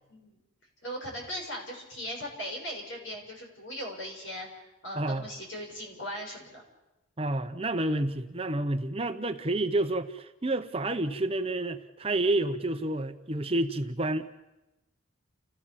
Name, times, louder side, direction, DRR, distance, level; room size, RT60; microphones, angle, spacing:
voice 1, 0.8-6.6, equal, 65° left, 6.9 m, -39 dB
voice 2, 4.9-5.3 7.2-14.3, right 2 dB, 30° right, 0.8 m, -29 dB
30.0 x 15.5 x 7.4 m
head